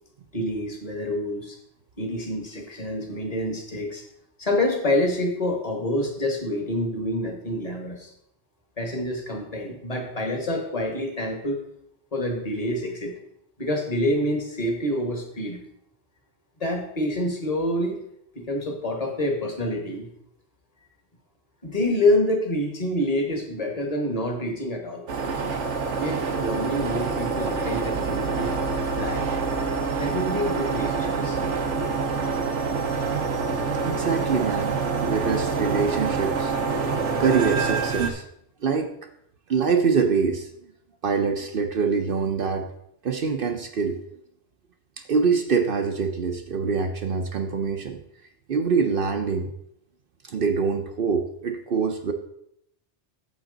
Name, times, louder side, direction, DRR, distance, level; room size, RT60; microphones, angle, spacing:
voice 1, 0.3-1.6 2.0-4.0 4.4-8.1 8.8-11.6 12.1-13.2 13.6-15.6 16.6-18.0 18.3-20.1 21.6-25.0 26.0-28.5 29.0-29.3 30.0-31.4, left 1 dB, 35° left, 3 dB, 1.6 m, -27 dB
sound 1, 25.1-38.1, right 4 dB, 90° right, 1.3 m, -26 dB
voice 2, 33.8-36.5 37.2-38.2 38.6-38.9 39.5-40.5 41.0-42.7 43.0-44.0 45.1-48.0 48.5-49.5 50.2-52.1, right 5 dB, 55° right, 5 dB, 0.8 m, -24 dB
9.1 x 7.4 x 3.9 m, 0.74 s
omnidirectional pair, 1.2 m